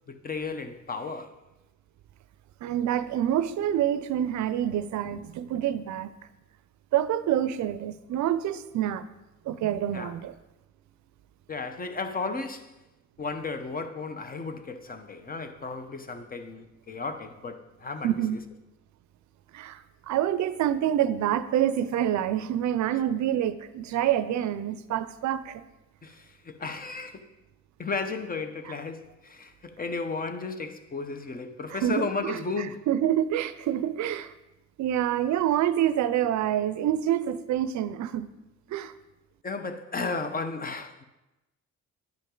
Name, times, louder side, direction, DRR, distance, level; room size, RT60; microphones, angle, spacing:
voice 1, 0.1-1.4 9.9-10.1 11.5-12.8 13.2-18.4 26.0-27.3 27.8-32.9 39.4-41.0, left 4 dB, 30° left, 0.8 m, -34 dB
voice 2, 2.6-6.1 6.9-9.0 9.5-10.3 18.0-18.4 19.5-25.6 31.8-32.4 32.9-34.3 34.8-38.3 38.7-38.9, right 11 dB, 70° right, 0.5 m, -27 dB
10.5 x 5.3 x 3.8 m
cardioid pair, 90°, 30 cm